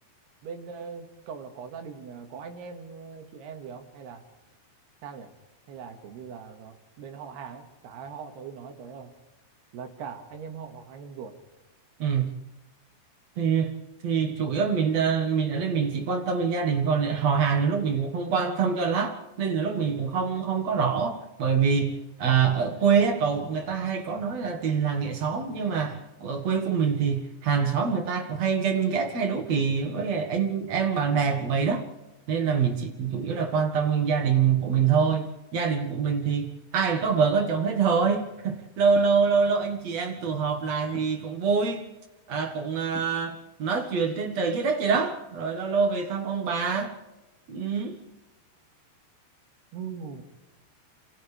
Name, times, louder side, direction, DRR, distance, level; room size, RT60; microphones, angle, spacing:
voice 1, 0.4-4.2 5.0-5.3 5.7-9.1 9.7-11.4 49.7-50.2, right 6 dB, 70° right, 5 dB, 3.8 m, -41 dB
voice 2, 12.0-12.3 13.4-13.7 14.0-31.8 32.3-41.8 42.3-46.9 47.5-48.0, right 6 dB, 50° right, 4 dB, 2.2 m, -25 dB
sound 1, 39.0-39.2 40.9-41.3 42.9-43.2 44.9-45.3, left 2 dB, 50° left, 1.5 m, -42 dB
27.5 x 27.5 x 3.5 m, 1.0 s
omnidirectional pair, 5.1 m